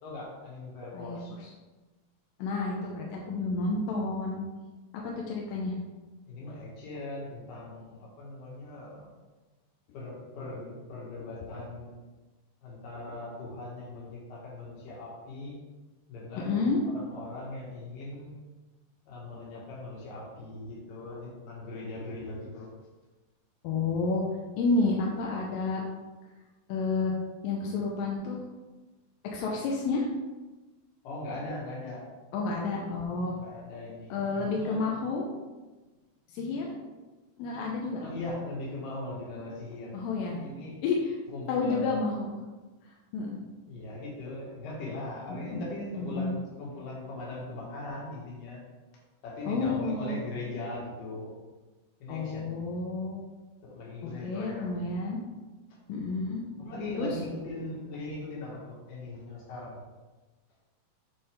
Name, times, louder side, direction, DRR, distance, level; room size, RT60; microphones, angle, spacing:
voice 1, 0.0-1.3 6.3-9.1 9.9-12.0 12.6-15.6 16.1-16.5 16.8-18.4 19.1-22.7 31.0-32.1 33.3-34.8 37.9-40.0 40.3-40.8 41.3-42.0 43.7-48.6 49.2-51.4 52.0-52.7 53.6-54.9 56.6-59.8, left 2 dB, 70° left, -4 dB, 3.5 m, -40 dB
voice 2, 0.9-1.5 2.4-4.4 4.9-5.8 16.5-16.8 23.6-24.3 24.6-25.8 26.7-27.1 27.4-28.4 29.3-30.1 32.3-33.3 34.1-35.3 36.3-36.7 37.4-38.0 39.9-40.4 40.8-41.2 41.5-42.3 43.1-43.4 45.3-45.7 46.0-46.3 49.5-50.2 52.1-53.2 54.0-55.2 55.9-56.4 57.0-57.2, left 3 dB, 90° left, -2 dB, 2.5 m, -30 dB
10.0 x 4.4 x 3.5 m, 1.2 s
omnidirectional pair, 4.0 m